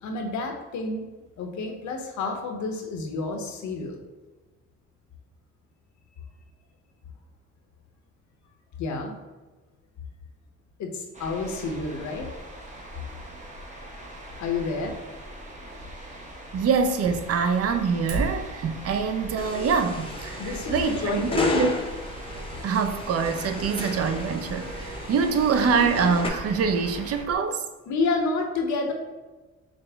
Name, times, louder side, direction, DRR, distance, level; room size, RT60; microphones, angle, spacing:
voice 1, 0.0-1.1 1.4-4.0 8.8-9.1 10.8-12.3 14.4-15.0 20.4-21.7 27.9-28.9, left 3 dB, 70° left, 3 dB, 0.7 m, -29 dB
sound 1, 11.1-27.2, right 1 dB, 25° right, 0.7 m, -42 dB
voice 2, 16.5-21.7 22.6-27.6, right 5 dB, 55° right, 8 dB, 0.5 m, -25 dB
Fire, 18.1-27.3, right 3 dB, 85° right, 0.7 m, -40 dB
sound 2, 19.4-26.3, left 3 dB, 20° left, 0.5 m, -33 dB
5.1 x 2.0 x 3.4 m, 1.2 s
cardioid pair, 90°, 30 cm